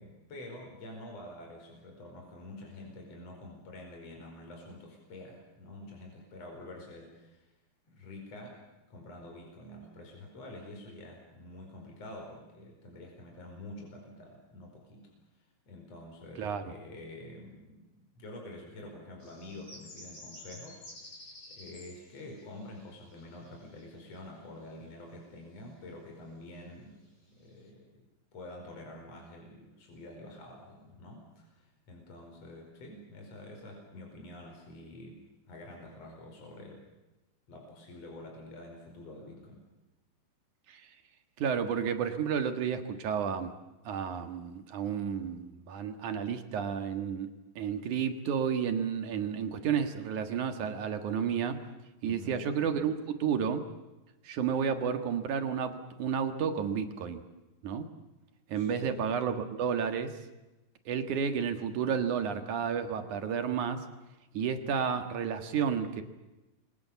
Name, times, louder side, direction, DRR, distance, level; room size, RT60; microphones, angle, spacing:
voice 1, 0.0-7.5 7.9-8.6 8.9-15.1 15.7-17.9 18.2-27.0 27.3-28.1 28.3-36.8 37.5-39.6 52.0-52.5 58.5-59.0, left 1 dB, 45° left, 1 dB, 5.9 m, -47 dB
sound 1, 19.2-25.0 25.6-25.7 26.6-26.7 27.1-27.7, left 1 dB, 25° left, 6.4 m, -52 dB
voice 2, 41.4-43.5 43.8-47.3 47.6-51.6 52.0-53.7 54.2-57.2 57.6-57.9 58.5-60.1 60.9-63.8 64.3-66.0, right 7 dB, 60° right, 7 dB, 3.0 m, -31 dB
29.5 x 23.0 x 7.1 m, 1.0 s
omnidirectional pair, 4.1 m